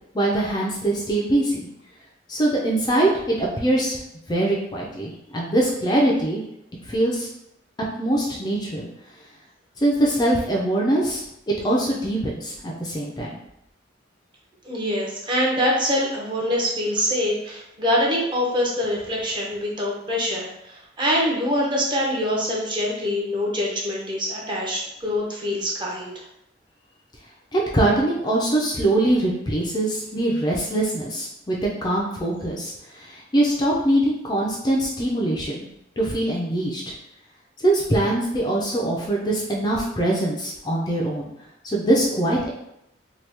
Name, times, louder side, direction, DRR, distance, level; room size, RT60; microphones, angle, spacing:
voice 1, 0.1-1.6 2.3-4.0 4.3-6.4 6.9-7.3 8.0-8.9 9.8-13.4 27.5-31.6 31.8-32.7 33.0-35.6 36.0-36.8 37.6-41.3 41.6-42.5, right 1 dB, 20° left, -4 dB, 0.4 m, -22 dB
voice 2, 14.6-26.2, equal, 25° right, -3 dB, 0.7 m, -24 dB
2.9 x 2.3 x 3.3 m, 0.81 s
head